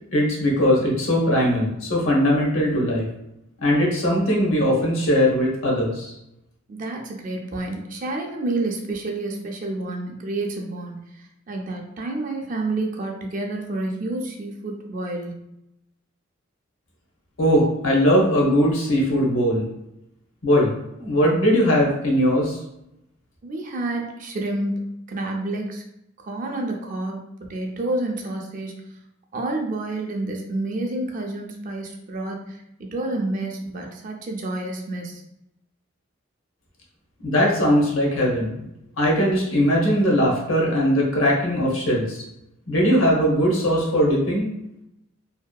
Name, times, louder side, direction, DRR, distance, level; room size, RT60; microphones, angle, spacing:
voice 1, 0.1-3.1 3.6-6.1 17.4-19.7 20.4-22.6 37.2-38.6 39.0-42.2 42.7-44.5, equal, 80° left, -2 dB, 0.8 m, -20 dB
voice 2, 6.7-15.4 23.4-24.8 25.1-25.8 26.2-28.8 29.3-35.2, right 2 dB, 40° right, 1 dB, 0.4 m, -29 dB
2.7 x 2.3 x 2.2 m, 0.84 s
head